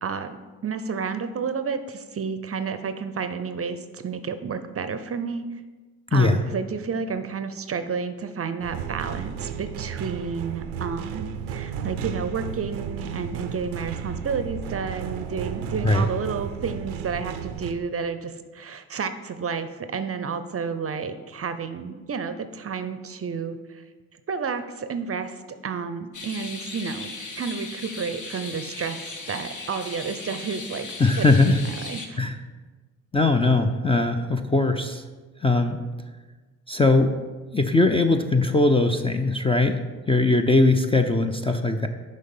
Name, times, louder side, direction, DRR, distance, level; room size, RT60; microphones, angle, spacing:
voice 1, 0.0-5.6 6.1-23.8 24.3-32.2, right 5 dB, 35° right, 10 dB, 0.6 m, -31 dB
sound 1, 8.6-17.7, right 7 dB, 85° right, 0.6 m, -33 dB
sound 2, 26.1-32.1, left 3 dB, 45° left, 1.3 m, -37 dB
voice 2, 31.0-31.6 32.2-32.3 33.1-35.0 35.4-35.8 36.7-37.2 37.5-39.8 40.1-41.9, left 2 dB, 15° left, 6 dB, 0.5 m, -20 dB
6.4 x 5.2 x 5.4 m, 1.3 s
hypercardioid pair, 50°, 42 cm